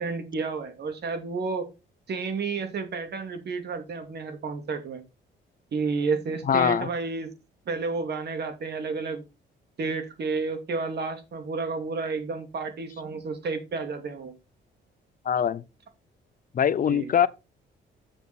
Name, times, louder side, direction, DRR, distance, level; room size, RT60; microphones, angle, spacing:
voice 1, 0.0-1.7 2.1-5.0 5.7-7.3 7.7-9.2 9.8-14.3 16.9-17.2, right 4 dB, 55° right, 2.4 m, -31 dB
voice 2, 6.5-6.9 15.2-15.6 16.5-17.3, left 8 dB, 45° left, 0.6 m, -22 dB
7.3 x 6.8 x 4.2 m
cardioid pair, 90°, 20 cm